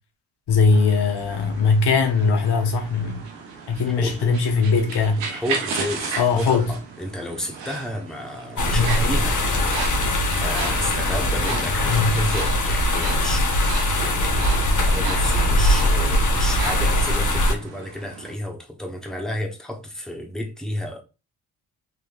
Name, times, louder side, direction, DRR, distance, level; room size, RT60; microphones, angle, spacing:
voice 1, 0.5-3.2 3.7-5.2 6.2-6.7 8.7-9.0 11.9-12.1, left 4 dB, 65° left, 0.9 m, -20 dB
sound 1, 0.6-18.3, right 5 dB, 85° right, 0.8 m, -35 dB
voice 2, 3.9-4.3 5.3-9.6 9.9-21.0, left 1 dB, ahead, 1.1 m, -32 dB
sound 2, 8.6-17.5, left 1 dB, 45° left, 1.0 m, -21 dB
3.6 x 3.0 x 2.5 m
supercardioid pair, 45°, 43 cm